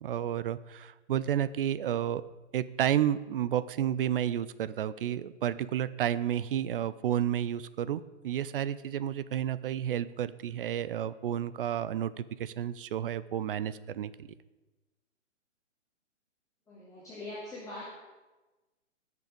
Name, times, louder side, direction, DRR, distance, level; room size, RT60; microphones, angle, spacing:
voice 1, 0.0-2.2 2.5-14.3, right 10 dB, 50° right, 16 dB, 0.5 m, -31 dB
voice 2, 16.7-17.9, left 2 dB, 10° left, -9 dB, 2.4 m, -42 dB
16.5 x 6.7 x 5.2 m, 1.2 s
hypercardioid pair, 155°, 37 cm